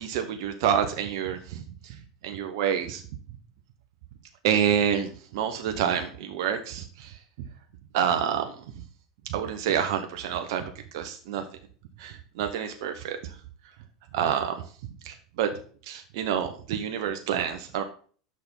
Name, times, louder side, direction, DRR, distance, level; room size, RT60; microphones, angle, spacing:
voice 1, 0.0-2.0 2.2-3.0 4.4-7.1 7.9-8.5 9.3-11.4 12.0-13.2 14.1-14.6 15.0-15.5 15.9-17.8, right 8 dB, 65° right, 6 dB, 1.1 m, -28 dB
6.6 x 6.2 x 5.4 m, 0.44 s
hypercardioid pair, 95°, 3 cm